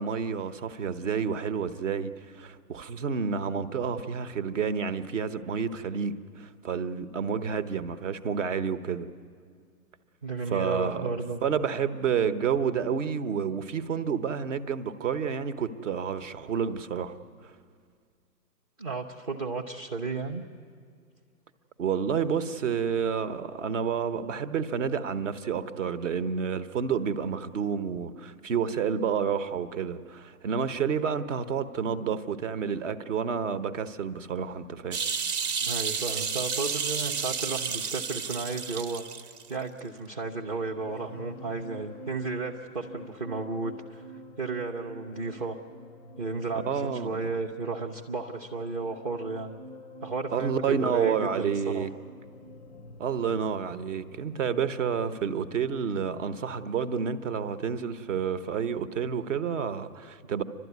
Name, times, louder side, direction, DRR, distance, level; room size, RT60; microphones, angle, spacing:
voice 1, 0.0-9.1 10.5-11.1 11.4-17.2 17.4-17.5 21.8-35.0 46.5-47.2 50.3-51.9 53.0-60.4, right 6 dB, 50° right, 13 dB, 1.1 m, -29 dB
voice 2, 10.2-11.4 18.8-20.4 35.6-39.0 39.5-44.0 44.4-45.6 46.2-49.6 50.0-51.9, right 3 dB, 25° right, 0 dB, 0.6 m, -33 dB
sound 1, 34.9-39.5 39.8-39.9, right 6 dB, 70° right, 1.3 m, -31 dB
sound 2, 40.5-57.2 57.5-57.8, equal, 25° left, 0.5 m, -48 dB
29.5 x 12.5 x 9.4 m, 2.1 s
hypercardioid pair, 155°, 48 cm